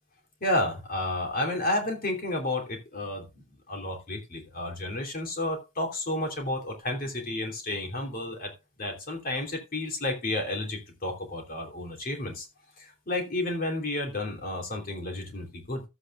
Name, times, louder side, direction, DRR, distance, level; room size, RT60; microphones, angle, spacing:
voice 1, 0.4-12.5 12.8-15.8, left 1 dB, 45° left, 3 dB, 3.1 m, -31 dB
14.0 x 8.2 x 2.4 m, 0.26 s
head